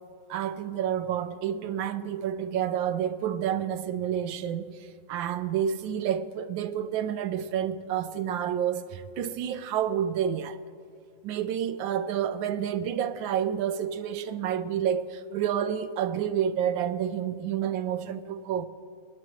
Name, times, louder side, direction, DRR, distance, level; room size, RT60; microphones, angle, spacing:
voice 1, 0.3-4.7 5.1-10.6 11.2-18.7, right 9 dB, 80° right, 1.4 m, -29 dB
21.5 x 11.5 x 3.1 m
omnidirectional pair, 2.1 m